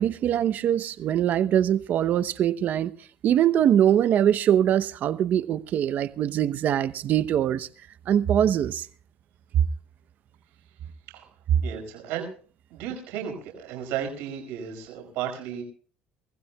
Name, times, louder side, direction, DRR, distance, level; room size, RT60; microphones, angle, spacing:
voice 1, 0.0-2.9 3.2-7.7 8.1-8.9, right 10 dB, 55° right, 0.9 m, -23 dB
voice 2, 11.6-12.3 12.7-15.6, right 9 dB, 80° right, 5.1 m, -34 dB
24.5 x 15.5 x 2.3 m
supercardioid pair, 95°, 3 cm